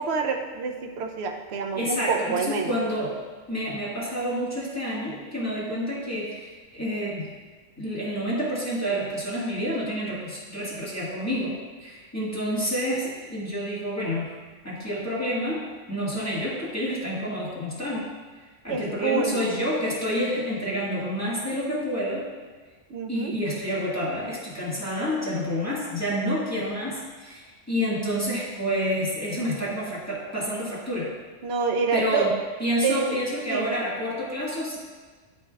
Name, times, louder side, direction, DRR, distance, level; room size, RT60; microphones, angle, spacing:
voice 1, 0.0-2.7 18.7-19.5 22.9-23.3 31.4-32.3 32.8-33.2 33.5-33.7, right 5 dB, 60° right, 3 dB, 0.9 m, -27 dB
voice 2, 1.7-3.2 3.5-7.3 7.8-11.5 11.8-14.3 14.6-15.6 15.9-18.1 18.6-22.3 23.1-31.1 31.9-32.3 32.6-34.8, equal, 10° left, -8 dB, 1.6 m, -28 dB
10.5 x 5.3 x 2.4 m, 1.4 s
omnidirectional pair, 1.3 m